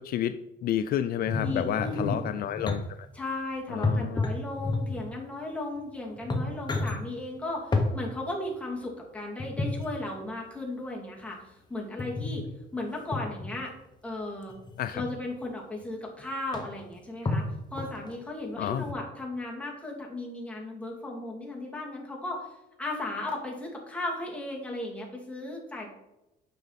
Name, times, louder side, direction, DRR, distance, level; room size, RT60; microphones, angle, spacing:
voice 1, 0.0-2.8 3.7-4.2 14.8-15.0 18.6-18.8, left 10 dB, 65° left, 11 dB, 0.4 m, -30 dB
sound 1, 1.2-2.8 3.8-5.1 5.8-5.9 6.2-7.0 7.7-7.9 9.4-9.9 12.0-12.5 13.1-13.5 14.5-15.1 15.8-15.9 16.2-16.3 16.5-16.9 17.3-18.1 18.8-18.9, left 2 dB, 25° left, 1.3 m, -30 dB
voice 2, 1.4-2.2 3.1-12.4 12.7-13.7 14.0-14.5 14.9-17.4 17.7-25.9, left 2 dB, 5° left, -2 dB, 2.6 m, -36 dB
9.2 x 6.1 x 4.1 m, 0.92 s
cardioid pair, 110°, 17 cm